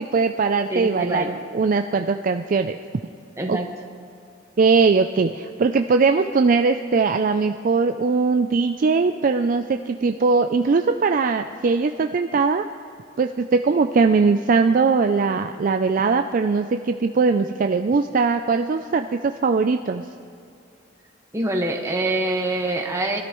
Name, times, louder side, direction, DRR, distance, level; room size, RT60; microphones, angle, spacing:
voice 1, 0.0-2.8 3.5-3.6 4.6-12.6 13.2-20.0, right 4 dB, 45° right, 6 dB, 0.4 m, -20 dB
voice 2, 0.7-1.3 3.4-3.7 21.3-23.2, right 2 dB, 15° right, 1 dB, 1.4 m, -25 dB
23.5 x 13.0 x 3.1 m, 2.6 s
head